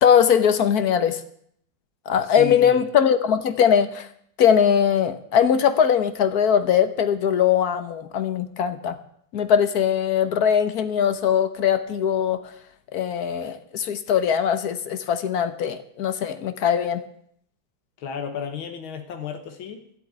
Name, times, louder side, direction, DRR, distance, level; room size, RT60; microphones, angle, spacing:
voice 1, 0.0-1.2 2.1-4.1 4.4-8.9 9.3-12.4 12.9-17.0, left 8 dB, 55° left, 11 dB, 1.3 m, -20 dB
voice 2, 2.2-2.9 18.0-20.0, left 6 dB, 90° left, 6 dB, 2.1 m, -33 dB
13.5 x 7.8 x 9.5 m, 0.68 s
omnidirectional pair, 2.2 m